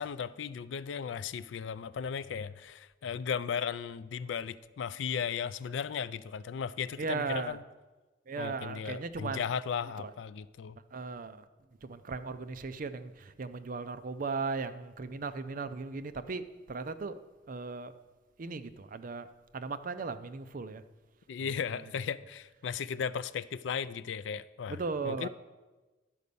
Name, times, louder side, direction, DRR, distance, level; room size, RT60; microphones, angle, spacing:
voice 1, 0.0-7.6 8.4-10.8 21.3-25.3, left 7 dB, 65° left, 0.3 m, -36 dB
voice 2, 7.0-7.6 8.3-9.4 10.9-11.4 11.8-17.2 17.5-17.9 18.4-19.3 19.5-20.8 21.4-21.5 24.7-25.3, right 4 dB, 45° right, 0.5 m, -37 dB
11.0 x 5.2 x 6.8 m
head